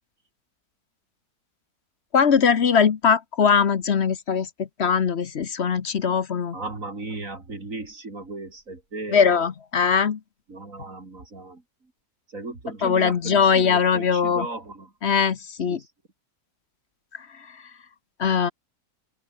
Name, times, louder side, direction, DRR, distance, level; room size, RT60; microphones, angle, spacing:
voice 1, 2.1-4.5 4.8-6.5 9.1-10.2 12.8-14.5 15.0-15.8 18.2-18.5, left 6 dB, 50° left, 1.1 m, -21 dB
voice 2, 6.5-9.5 10.5-11.6 12.3-14.9 15.7-15.9, right 3 dB, 60° right, 4.1 m, -36 dB
open air
omnidirectional pair, 1.6 m